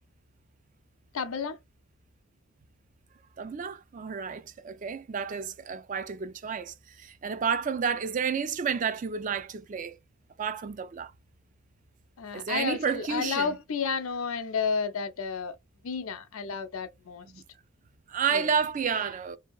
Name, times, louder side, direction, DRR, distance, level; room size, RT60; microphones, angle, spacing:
voice 1, 1.1-1.6 12.2-15.6 15.8-17.3 18.3-18.5, left 5 dB, 80° left, 0.5 m, -31 dB
voice 2, 3.4-10.0 10.4-11.1 12.3-13.5 17.3-17.4 18.1-19.4, right 6 dB, 40° right, 0.3 m, -31 dB
2.7 x 2.6 x 2.2 m
head